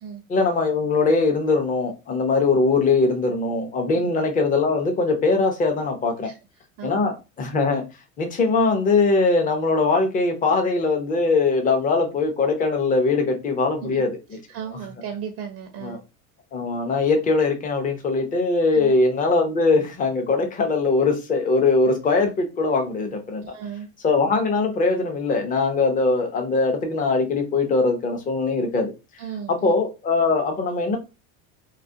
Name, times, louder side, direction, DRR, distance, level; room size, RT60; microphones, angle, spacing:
voice 1, 0.3-6.3 6.8-7.8 8.2-14.1 14.7-14.8 15.8-16.0 16.5-23.4 24.0-28.9 29.5-31.0, left 3 dB, 20° left, 0.5 m, -21 dB
voice 2, 14.5-16.0 18.7-18.9 23.4-23.9 29.2-29.7, right 7 dB, 40° right, 0.5 m, -35 dB
2.3 x 2.1 x 2.6 m
supercardioid pair, 125°, 42 cm